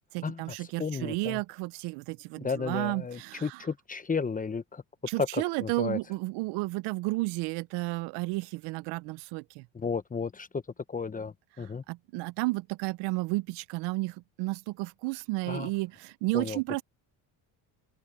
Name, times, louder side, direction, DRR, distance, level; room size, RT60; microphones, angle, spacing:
voice 1, 0.1-3.6 5.1-9.7 11.9-16.8, right 22 dB, 85° right, 0.6 m, -32 dB
voice 2, 0.8-1.4 2.4-4.8 5.3-6.0 9.7-10.6 10.9-11.8 15.5-15.7 16.3-16.6, left 5 dB, 20° left, 1.0 m, -33 dB
open air
cardioid pair, 105°, 41 cm